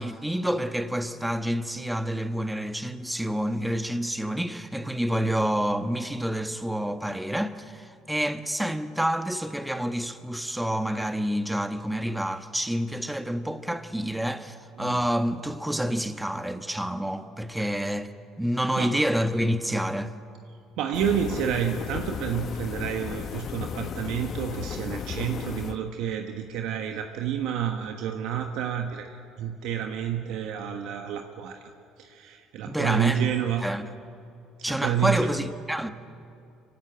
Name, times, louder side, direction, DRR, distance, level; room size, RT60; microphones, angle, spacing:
voice 1, 0.0-18.1 18.4-20.1 32.7-33.3 33.6-33.9 34.6-35.9, equal, 5° right, 1.3 m, -28 dB
voice 2, 20.8-31.7 32.0-33.7 34.7-35.5, right 9 dB, 75° right, 1.3 m, -29 dB
sound 1, 20.9-25.9, left 8 dB, 50° left, 0.9 m, -35 dB
24.5 x 16.5 x 9.2 m
supercardioid pair, 75°, 0 cm